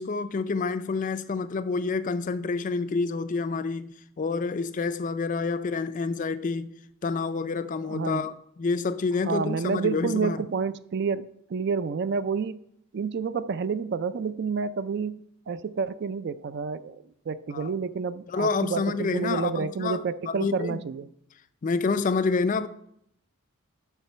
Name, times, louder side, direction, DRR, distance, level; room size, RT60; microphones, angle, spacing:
voice 1, 0.0-6.7 7.0-10.5 17.5-17.7 18.3-20.8 21.6-22.7, left 4 dB, 35° left, 0.4 m, -28 dB
voice 2, 7.8-8.3 9.2-12.6 12.9-15.2 15.5-21.1, right 5 dB, 50° right, 0.3 m, -29 dB
7.2 x 5.8 x 5.5 m
head